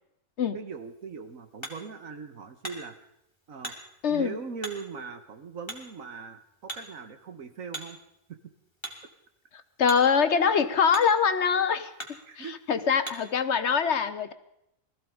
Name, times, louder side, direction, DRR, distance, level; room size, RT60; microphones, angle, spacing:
voice 1, 0.5-3.0 3.5-3.8 4.1-8.0 8.3-8.4 12.3-12.6, right 5 dB, 70° right, 8 dB, 1.7 m, -40 dB
Hammer, 0.7-13.4, right 1 dB, 20° left, 2.5 m, -45 dB
voice 2, 4.0-4.4 9.8-11.9 12.4-14.3, left 6 dB, 60° left, 12 dB, 1.1 m, -24 dB
19.5 x 14.5 x 5.2 m, 0.80 s
omnidirectional pair, 1.4 m